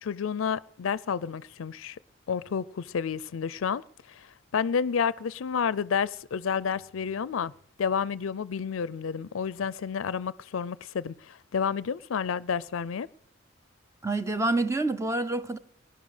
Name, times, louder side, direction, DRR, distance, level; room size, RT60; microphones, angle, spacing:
voice 1, 0.0-2.0 2.3-3.8 4.1-7.5 7.8-13.1, left 6 dB, 90° left, 0.5 m, -30 dB
voice 2, 14.0-15.6, right 2 dB, 15° right, 0.8 m, -27 dB
18.5 x 11.0 x 5.0 m
head